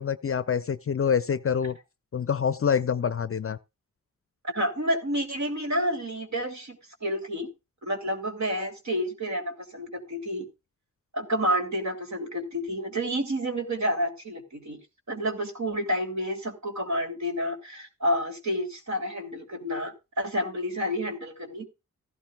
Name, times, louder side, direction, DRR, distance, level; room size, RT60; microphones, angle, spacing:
voice 1, 0.0-1.8 2.1-3.6, left 7 dB, 45° left, 0.6 m, -26 dB
voice 2, 4.4-7.5 7.8-10.5 11.1-14.8 15.1-21.7, equal, 60° right, 3.0 m, -29 dB
15.0 x 11.5 x 2.4 m
cardioid pair, 50°, 33 cm